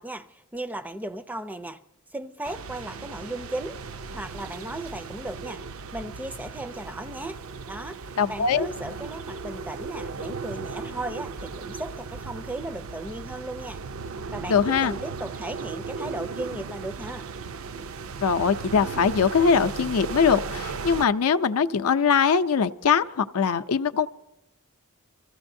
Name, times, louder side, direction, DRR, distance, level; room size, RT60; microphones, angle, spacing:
voice 1, 0.0-1.8 2.1-3.8 4.1-5.6 5.9-7.4 7.6-13.8 14.3-17.3, right 1 dB, 5° right, 0.4 m, -36 dB
sound 1, 2.4-21.1, right 4 dB, 65° right, 0.5 m, -36 dB
voice 2, 8.2-8.7 14.5-14.9 18.2-24.1, left 6 dB, 75° left, 0.5 m, -22 dB
24.5 x 14.5 x 2.6 m
head